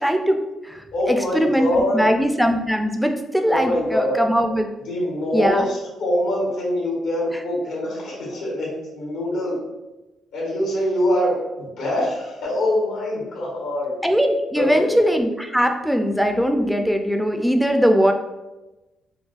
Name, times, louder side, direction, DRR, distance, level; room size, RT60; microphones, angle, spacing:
voice 1, 0.0-4.7 5.3-5.7 14.0-18.1, equal, ahead, 5 dB, 0.4 m, -20 dB
voice 2, 0.9-2.0 3.5-4.2 4.9-8.7 8.9-9.6 10.3-13.9 14.6-15.0, left 1 dB, 90° left, -5 dB, 1.3 m, -24 dB
4.6 x 2.2 x 2.4 m, 1.1 s
cardioid pair, 90°, 0 cm